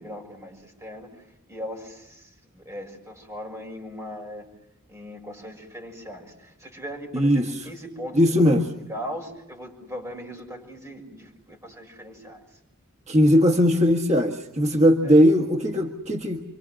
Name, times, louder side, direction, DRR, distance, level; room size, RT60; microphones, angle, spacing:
voice 1, 0.0-4.5 4.9-12.6 15.0-15.2, equal, 15° right, 1 dB, 6.5 m, -39 dB
voice 2, 7.1-7.5 8.2-8.7 13.1-16.4, equal, 35° right, 1 dB, 1.6 m, -19 dB
29.0 x 24.5 x 7.7 m, 0.86 s
head